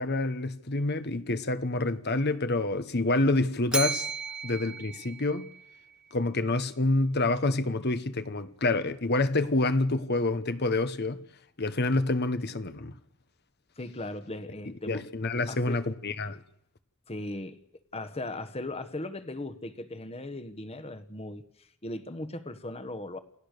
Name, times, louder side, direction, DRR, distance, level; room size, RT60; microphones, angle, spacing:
voice 1, 0.0-4.1 4.4-5.5 6.1-11.2 11.6-12.9 14.9-16.4, left 2 dB, 50° left, 1.2 m, -27 dB
Bell, 3.7-5.9, right 5 dB, 5° right, 0.8 m, -34 dB
voice 2, 13.8-15.0 15.5-15.8 17.1-17.6 17.9-21.4 21.8-23.2, left 2 dB, 30° left, 1.4 m, -38 dB
28.5 x 17.0 x 6.8 m
head